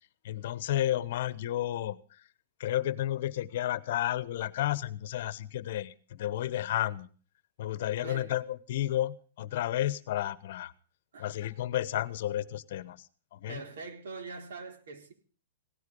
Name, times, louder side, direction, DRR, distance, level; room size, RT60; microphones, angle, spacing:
voice 1, 0.2-2.0 2.6-7.1 7.6-10.7 11.2-13.0 13.3-13.6, left 13 dB, 45° left, 1.0 m, -32 dB
voice 2, 8.0-8.4 11.1-11.5 13.5-15.1, right 4 dB, 75° right, 4.1 m, -43 dB
17.5 x 13.0 x 5.4 m
supercardioid pair, 175°, 0 cm